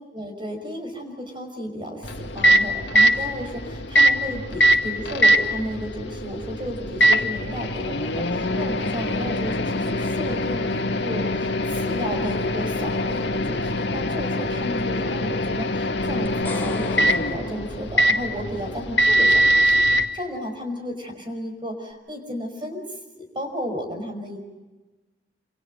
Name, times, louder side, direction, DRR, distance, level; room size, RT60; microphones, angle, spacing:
voice 1, 0.1-22.8 23.1-24.4, equal, 30° right, 4 dB, 5.5 m, -33 dB
Microwave oven, 2.0-20.0, right 1 dB, 90° left, 2.0 m, -22 dB
sound 1, 16.3-18.6, left 2 dB, 10° left, 3.2 m, -38 dB
29.0 x 28.5 x 5.4 m, 1.2 s
head